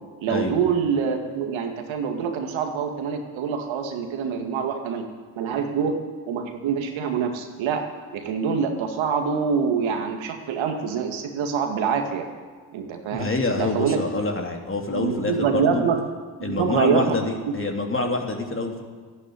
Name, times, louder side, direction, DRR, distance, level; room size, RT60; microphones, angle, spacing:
voice 1, 0.2-5.0 5.4-6.0 6.3-7.8 8.1-12.3 12.7-13.3 13.6-14.0 14.9-16.0 16.4-17.2, right 6 dB, 70° right, 4 dB, 2.1 m, -25 dB
voice 2, 13.1-15.8 16.4-18.8, left 2 dB, 25° left, 2 dB, 3.1 m, -26 dB
13.5 x 11.0 x 9.5 m, 1.5 s
hypercardioid pair, 55°, 49 cm